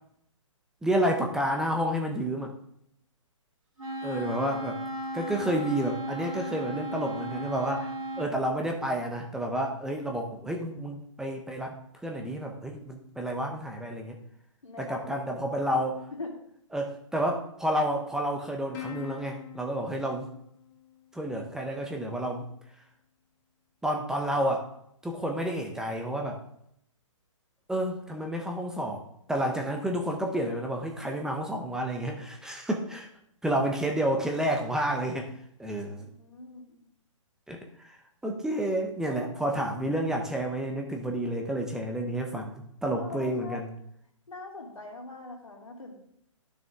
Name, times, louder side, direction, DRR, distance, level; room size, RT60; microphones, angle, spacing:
voice 1, 0.8-2.5 4.0-4.8 5.1-11.8 12.0-14.2 14.8-16.0 16.7-20.3 21.1-22.5 23.8-24.7 25.0-26.4 27.7-29.0 29.3-33.1 33.4-35.3 35.6-36.1 37.5-38.0 38.2-43.7, right 1 dB, 5° right, 2 dB, 0.8 m, -30 dB
Wind instrument woodwind instrument, 3.8-8.4, right 1 dB, 80° right, 2.5 m, -35 dB
voice 2, 14.6-16.3 36.0-36.8 39.1-39.6 43.0-43.6 44.3-46.0, left 3 dB, 85° left, -1 dB, 3.1 m, -43 dB
Plucked string instrument, 18.7-21.5, left 11 dB, 35° left, 1.2 m, -45 dB
12.0 x 6.3 x 3.6 m, 0.71 s
hypercardioid pair, 135°, 17 cm